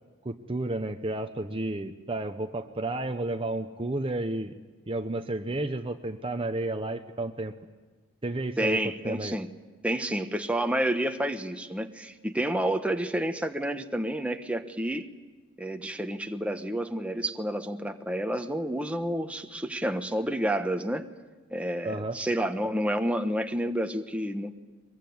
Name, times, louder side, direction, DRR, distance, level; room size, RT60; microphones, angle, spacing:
voice 1, 0.2-4.6 4.9-7.5 8.2-9.3 21.8-22.2, right 2 dB, 25° right, 7 dB, 0.9 m, -32 dB
voice 2, 8.6-9.5 9.8-15.1 15.6-21.1 21.5-24.6, right 1 dB, 5° right, 6 dB, 1.1 m, -29 dB
23.0 x 22.5 x 9.5 m, 1.3 s
head